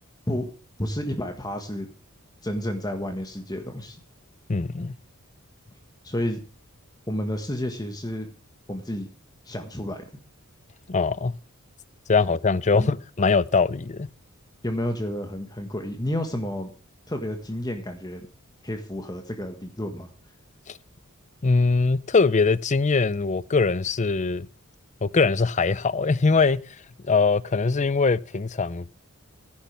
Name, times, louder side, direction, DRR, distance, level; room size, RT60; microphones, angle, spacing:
voice 1, 0.8-1.9 2.4-4.0 6.0-6.4 7.1-8.3 8.7-9.1 9.4-10.1 12.7-12.9 14.6-16.7 17.1-18.3 18.6-20.1, equal, 20° left, 1.6 m, -30 dB
voice 2, 4.5-4.9 10.9-11.3 12.1-14.1 20.7-20.8 21.4-24.5 25.0-26.6 27.1-29.0, left 4 dB, 35° left, 0.5 m, -22 dB
16.0 x 10.5 x 3.4 m
head